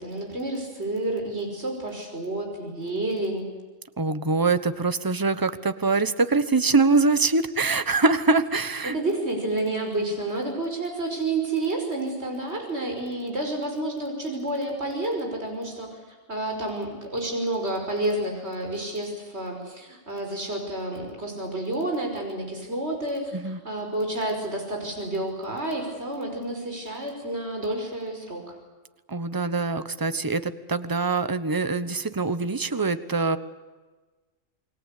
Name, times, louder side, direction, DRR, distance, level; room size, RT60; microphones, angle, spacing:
voice 1, 0.0-3.5 8.9-16.0 16.3-28.5, right 2 dB, 55° right, 2 dB, 5.9 m, -30 dB
voice 2, 4.0-9.0 23.3-23.6 29.1-33.4, right 3 dB, 15° right, 12 dB, 1.1 m, -24 dB
28.5 x 21.5 x 8.4 m, 1.2 s
omnidirectional pair, 1.3 m